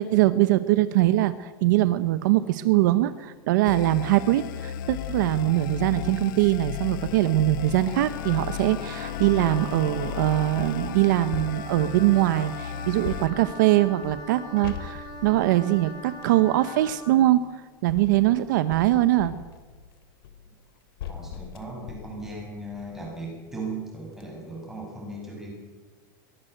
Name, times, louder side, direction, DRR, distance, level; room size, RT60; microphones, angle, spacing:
voice 1, 0.0-19.3, right 15 dB, 55° right, 12 dB, 1.0 m, -22 dB
sound 1, 3.7-13.3, left 11 dB, 60° left, 1.0 m, -35 dB
sound 2, 5.3-5.5 5.9-10.0 10.6-12.1 13.0-16.4 17.3-23.3 23.7-23.8 24.1-24.3, left 9 dB, 80° left, 2.8 m, -42 dB
Wind instrument woodwind instrument, 7.9-17.1, left 1 dB, 30° left, 4.8 m, -41 dB
voice 2, 21.1-25.5, right 2 dB, 5° right, -2 dB, 6.7 m, -37 dB
22.5 x 20.0 x 8.0 m, 1.4 s
supercardioid pair, 175°, 12 cm